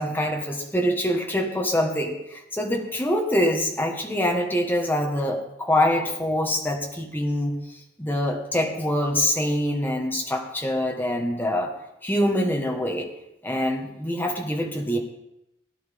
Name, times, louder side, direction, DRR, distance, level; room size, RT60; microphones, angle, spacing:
voice 1, 0.0-7.6 8.0-11.7 12.0-13.1 13.4-15.0, left 1 dB, 10° left, 2 dB, 1.5 m, -25 dB
17.5 x 10.5 x 3.7 m, 0.85 s
head